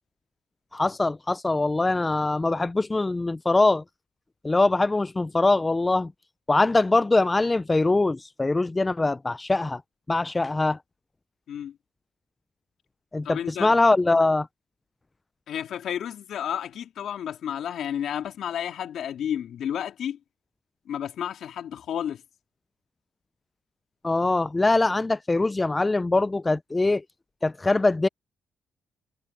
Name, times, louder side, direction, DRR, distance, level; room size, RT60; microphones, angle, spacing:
voice 1, 0.7-3.8 4.4-6.1 6.5-9.8 10.1-10.8 13.1-14.5 24.0-27.0 27.4-28.1, left 2 dB, 20° left, 0.3 m, -22 dB
voice 2, 13.2-13.7 15.5-20.2 20.9-22.2, left 9 dB, 70° left, 3.3 m, -31 dB
cardioid pair, 90°, 0 cm